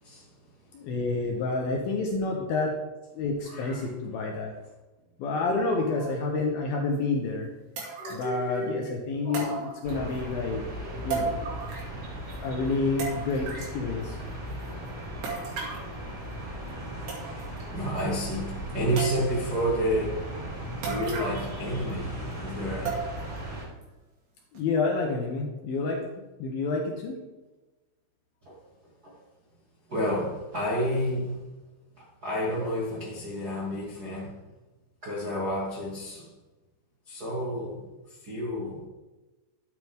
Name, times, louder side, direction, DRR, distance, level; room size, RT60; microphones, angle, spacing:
voice 1, 0.7-2.7 3.1-4.5 5.2-7.5 8.1-10.6 11.0-11.4 12.4-14.2 24.5-26.0 26.4-27.2, left 3 dB, 75° left, 2.1 m, -29 dB
voice 2, 3.4-3.9 5.5-6.1 8.0-9.0 9.2-9.7 10.8-11.4 17.7-20.3 20.8-23.0 28.4-28.6 29.0-29.2 29.9-31.4 31.9-34.4 35.0-36.3 37.1-38.9, equal, 75° right, 0.8 m, -31 dB
sound 1, 6.9-7.0 7.8-8.4 9.3-10.2 11.1-12.0 12.3-12.4 13.0-13.8 15.2-15.9 16.7-16.8 17.1-17.6 18.0-18.1 19.0-19.5 20.8-21.6 21.9-22.0 22.9-23.4 23.8-23.9 24.5-24.6, right 5 dB, 60° right, 4.2 m, -35 dB
sound 2, 9.8-23.7, right 1 dB, 15° right, 3.9 m, -37 dB
12.5 x 8.7 x 3.6 m
omnidirectional pair, 5.8 m